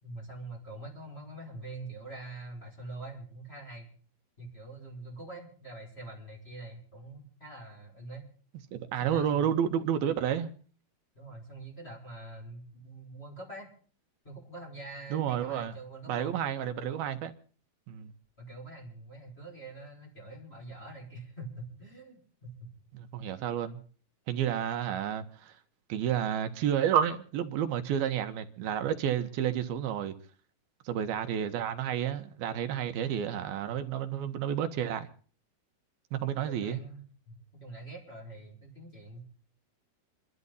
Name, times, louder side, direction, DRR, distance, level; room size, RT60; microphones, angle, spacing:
voice 1, 0.0-3.9 4.4-8.3 9.0-9.5 11.1-13.7 14.2-16.4 16.6-16.9 18.4-22.7 36.4-39.2, right 2 dB, 15° left, 5.7 m, -45 dB
voice 2, 8.7-10.5 15.1-15.7 16.1-17.4 17.9-18.1 22.9-23.8 24.3-25.6 25.9-30.1 30.9-35.1 36.1-36.8, right 9 dB, 70° right, 2.6 m, -30 dB
27.5 x 12.5 x 4.0 m
omnidirectional pair, 5.1 m